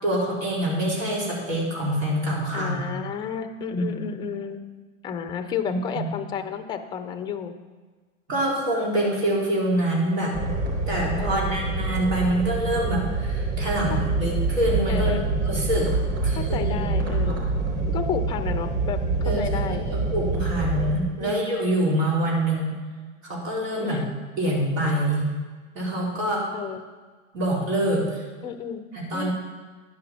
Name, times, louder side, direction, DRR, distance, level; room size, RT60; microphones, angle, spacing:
voice 1, 0.0-2.9 3.7-4.0 5.7-6.0 8.3-10.5 10.9-15.2 15.4-15.9 16.2-17.5 19.2-19.5 19.9-22.7 23.2-24.0 24.4-25.2 25.7-26.5 27.3-28.2 28.9-29.3, right 1 dB, 80° right, -5 dB, 3.9 m, -25 dB
voice 2, 2.5-4.6 5.0-7.5 11.2-11.6 13.9-14.0 14.9-15.3 16.4-17.4 17.9-19.0 19.3-19.9 21.2-21.7 23.8-24.1 26.5-26.8 28.4-28.8 29.1-29.3, left 7 dB, 10° left, 7 dB, 0.4 m, -32 dB
sound 1, 10.3-20.9, right 3 dB, 20° right, 3.9 m, -26 dB
11.0 x 6.0 x 7.2 m, 1.4 s
hypercardioid pair, 125°, 41 cm